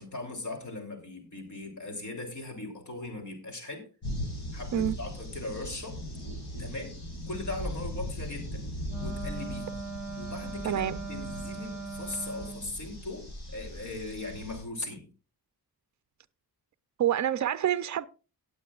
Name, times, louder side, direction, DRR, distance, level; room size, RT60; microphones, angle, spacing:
voice 1, 0.0-3.9 4.5-6.0 6.6-7.0 7.3-8.6 9.0-9.8 10.2-10.8 11.1-15.1, left 2 dB, 50° left, 3.1 m, -39 dB
sound 1, 4.0-14.6, equal, 85° left, 5.4 m, -39 dB
Wind instrument woodwind instrument, 8.9-12.7, right 3 dB, 5° right, 1.8 m, -39 dB
voice 2, 10.6-11.0 17.0-18.1, right 10 dB, 50° right, 0.5 m, -27 dB
18.0 x 8.4 x 2.4 m
wide cardioid pair, 170°, 39 cm